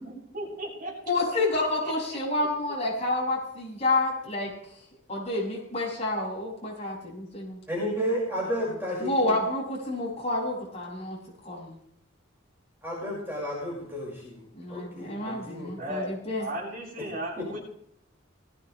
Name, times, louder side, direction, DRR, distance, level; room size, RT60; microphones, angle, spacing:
voice 1, 0.0-0.9 15.8-16.1 16.4-17.6, right 1 dB, 45° right, -4 dB, 7.7 m, -35 dB
voice 2, 1.1-4.8 5.1-7.6 9.0-11.2 11.4-11.8 14.6-16.5, left 2 dB, 30° left, -5 dB, 7.2 m, -29 dB
voice 3, 7.7-9.4 12.8-14.4 14.7-15.7 17.4-17.5, equal, 10° right, -6 dB, 5.7 m, -32 dB
19.5 x 16.5 x 3.4 m, 0.72 s
head